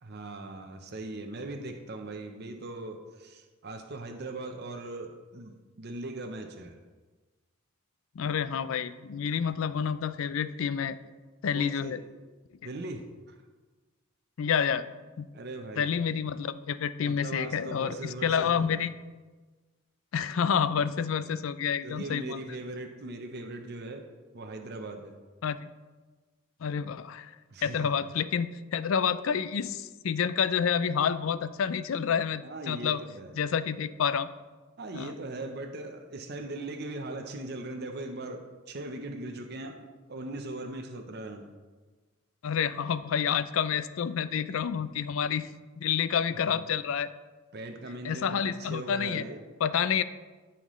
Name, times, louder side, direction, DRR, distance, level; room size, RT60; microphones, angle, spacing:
voice 1, 0.0-6.8 11.5-12.0 12.6-13.4 15.3-15.9 17.0-18.8 21.8-24.0 24.3-25.1 27.5-27.9 32.4-33.3 34.8-41.5 47.5-49.4, right 2 dB, 50° right, 4 dB, 0.7 m, -40 dB
voice 2, 8.2-11.0 11.4-12.0 14.4-14.8 15.2-15.3 15.8-18.9 20.1-22.4 25.4-25.7 26.6-27.3 27.6-33.0 33.4-34.3 34.9-35.1 42.4-45.5 45.8-47.1 48.0-49.2 49.6-50.0, left 7 dB, 70° left, 14 dB, 0.4 m, -29 dB
13.0 x 5.8 x 3.1 m, 1.3 s
head